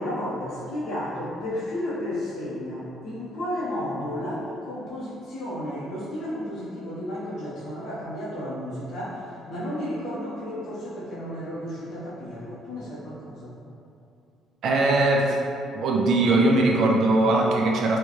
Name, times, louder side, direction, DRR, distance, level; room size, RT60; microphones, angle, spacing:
voice 1, 0.0-13.5, left 1 dB, 55° left, -10 dB, 0.8 m, -32 dB
voice 2, 14.6-15.4 15.7-18.0, right 2 dB, 55° right, -1 dB, 0.4 m, -20 dB
4.4 x 2.2 x 3.0 m, 2.7 s
cardioid pair, 150°, 0 cm